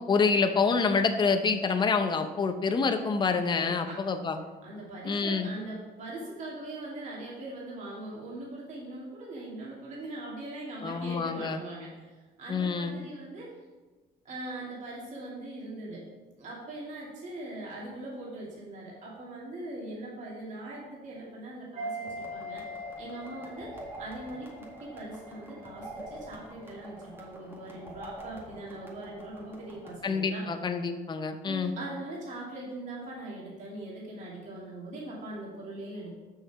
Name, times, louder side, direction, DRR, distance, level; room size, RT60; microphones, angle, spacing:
voice 1, 0.1-4.4 5.1-5.5 10.8-11.6 12.5-12.9 30.0-31.7, left 5 dB, 25° left, 7 dB, 0.7 m, -27 dB
voice 2, 3.5-4.1 4.6-13.5 14.2-16.0 16.4-30.4 31.4-36.1, right 1 dB, 45° right, -5 dB, 2.4 m, -41 dB
sound 1, 21.8-25.7 25.9-26.1, equal, 65° right, 2.5 m, -42 dB
sound 2, 22.0-29.9, right 2 dB, 15° right, 2.0 m, -46 dB
6.5 x 6.3 x 4.8 m, 1.3 s
cardioid pair, 110°, 17 cm